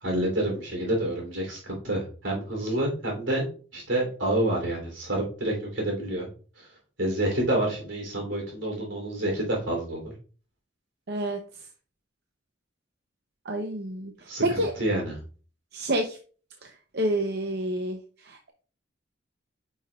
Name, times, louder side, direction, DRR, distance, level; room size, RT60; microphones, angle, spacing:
voice 1, 0.0-3.5 3.7-6.3 6.6-6.7 7.0-10.0 14.3-15.2, right 1 dB, 85° right, 0 dB, 3.2 m, -28 dB
voice 2, 11.1-11.4 13.4-14.1 14.4-14.7 15.7-16.2 16.6-18.5, right 1 dB, 55° right, 4 dB, 0.7 m, -29 dB
9.2 x 5.5 x 2.4 m, 0.39 s
head